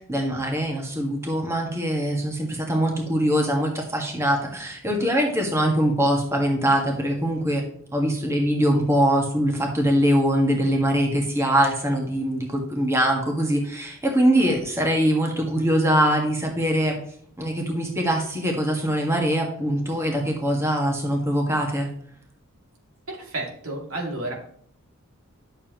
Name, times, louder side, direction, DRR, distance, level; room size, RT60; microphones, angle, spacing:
voice 1, 0.1-7.6 7.9-17.0 17.4-21.9, equal, 15° right, 1 dB, 1.6 m, -23 dB
voice 2, 23.1-24.3, right 2 dB, 85° right, 0 dB, 2.6 m, -31 dB
11.0 x 7.0 x 3.0 m, 0.62 s
head